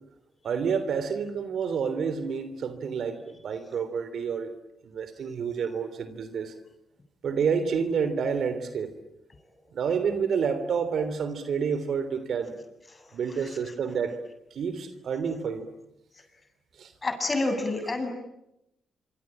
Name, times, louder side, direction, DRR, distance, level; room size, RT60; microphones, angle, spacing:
voice 1, 0.4-4.5 4.8-6.5 7.2-8.9 9.7-12.5 13.1-14.2 14.5-15.7 16.8-16.9, right 6 dB, 70° right, 12 dB, 3.2 m, -29 dB
voice 2, 17.0-18.1, left 2 dB, 35° left, 6 dB, 7.5 m, -27 dB
26.5 x 25.5 x 8.9 m, 0.85 s
cardioid pair, 60°, 0 cm